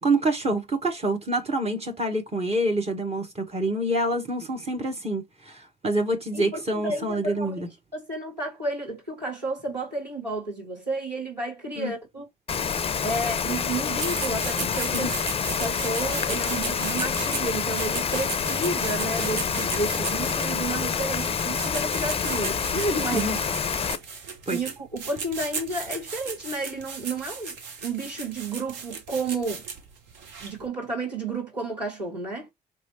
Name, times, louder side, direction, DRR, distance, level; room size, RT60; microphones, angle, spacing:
voice 1, 0.0-7.7 11.8-11.9 14.9-15.1 23.1-23.4 24.5-24.6, right 1 dB, 30° right, 1.2 m, -27 dB
voice 2, 6.3-7.6 7.9-12.3 13.0-15.3 15.6-23.3 24.1-24.2 24.5-27.6 27.8-29.6 30.4-32.5, right 2 dB, 90° right, 1.1 m, -31 dB
Rain, 12.5-24.0, left 6 dB, 30° left, 0.5 m, -27 dB
sound 1, 14.0-30.7, right 5 dB, 60° right, 0.9 m, -36 dB
4.5 x 3.0 x 2.8 m
figure-of-eight pair, 45°, 21 cm